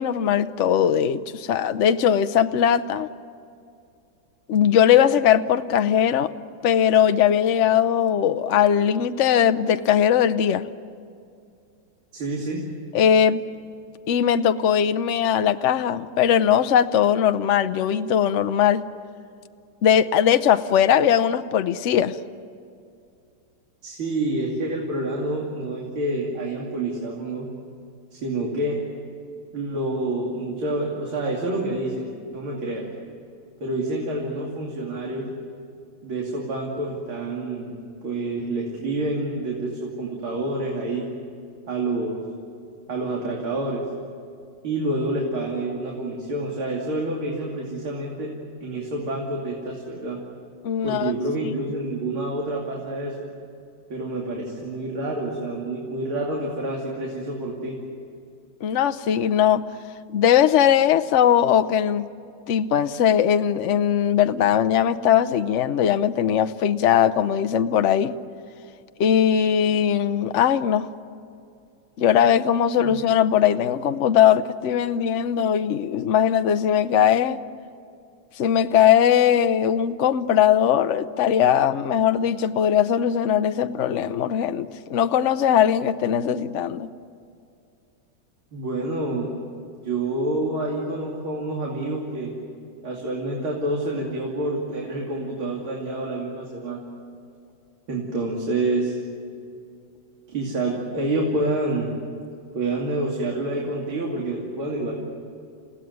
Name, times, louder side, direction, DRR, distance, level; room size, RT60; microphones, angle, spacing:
voice 1, 0.0-3.1 4.5-6.3 6.6-10.7 12.9-13.4 14.1-18.8 19.8-22.2 50.6-51.1 51.4-51.5 58.6-59.6 60.1-62.1 62.5-68.1 69.0-70.9 72.0-77.4 78.4-86.9, left 9 dB, 80° left, 10 dB, 0.6 m, -20 dB
voice 2, 12.1-12.6 23.8-27.5 28.1-28.8 29.5-32.9 33.6-35.3 36.0-37.7 38.0-41.1 41.7-42.2 42.9-43.9 44.6-48.3 48.6-50.2 50.8-53.2 53.9-57.8 72.8-73.0 88.5-89.3 89.8-92.3 92.8-96.9 97.9-99.0 100.3-101.9 102.5-105.0, right 2 dB, 90° right, -2 dB, 3.6 m, -28 dB
29.0 x 17.0 x 9.5 m, 2.4 s
omnidirectional pair, 2.2 m